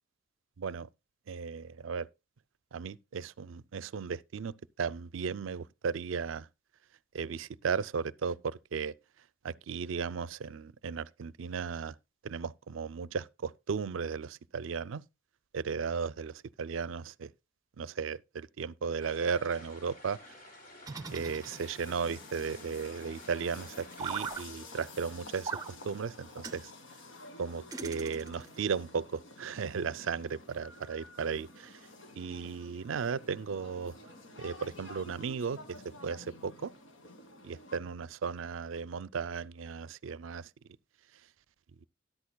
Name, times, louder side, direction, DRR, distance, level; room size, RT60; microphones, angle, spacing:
voice 1, 0.6-0.9 1.3-2.1 2.7-4.5 4.8-6.5 7.1-8.9 9.4-11.9 12.2-15.0 15.5-17.3 17.8-20.4 21.1-25.6 25.8-26.7 27.4-31.8 32.2-33.9 34.4-36.7 37.4-40.5, right 6 dB, 80° right, 0.4 m, -35 dB
sound 1, 19.0-24.4, left 1 dB, 45° left, 3.2 m, -53 dB
sound 2, 20.8-22.0 24.0-24.4 25.4-25.7 26.4-26.6 27.7-28.6, right 5 dB, 20° right, 0.7 m, -39 dB
sound 3, 21.0-37.8, left 2 dB, 80° left, 1.6 m, -51 dB
13.0 x 11.0 x 2.3 m
head